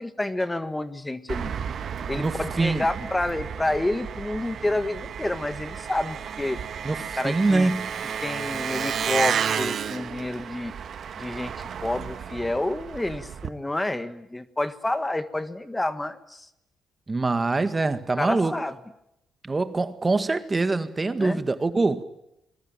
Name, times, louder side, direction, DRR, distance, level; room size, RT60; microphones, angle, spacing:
voice 1, 0.0-1.5 2.1-6.6 7.1-7.7 8.2-10.7 11.2-16.5 18.2-18.8 21.2-21.4, left 1 dB, 15° left, 1.5 m, -29 dB
Engine, 1.3-13.5, right 8 dB, 55° right, 1.5 m, -32 dB
voice 2, 2.2-2.9 6.8-7.9 17.1-18.6 19.4-22.0, right 3 dB, 25° right, 1.8 m, -24 dB
27.0 x 22.0 x 9.1 m
cardioid pair, 90°, 0 cm